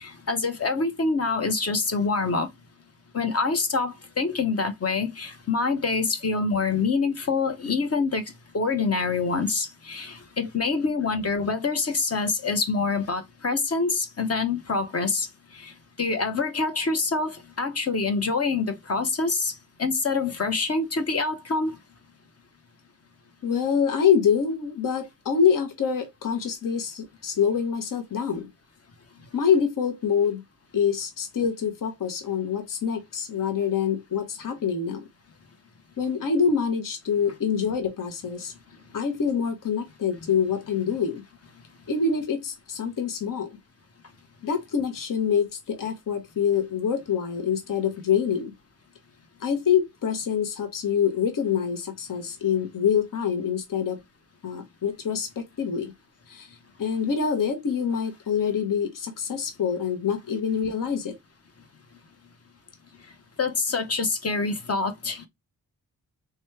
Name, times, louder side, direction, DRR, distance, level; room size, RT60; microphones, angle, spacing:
voice 1, 0.0-2.5 3.1-8.2 8.5-15.3 15.5-21.8 63.4-65.3, left 4 dB, 40° left, 1.0 m, -26 dB
voice 2, 23.4-28.5 29.3-30.4 30.7-35.0 36.0-38.5 38.9-41.2 41.9-43.5 44.4-48.5 49.4-54.0 54.4-55.9 56.3-56.5 56.8-61.2, left 7 dB, 60° left, 1.1 m, -25 dB
3.4 x 3.1 x 3.2 m
cardioid pair, 70°, 37 cm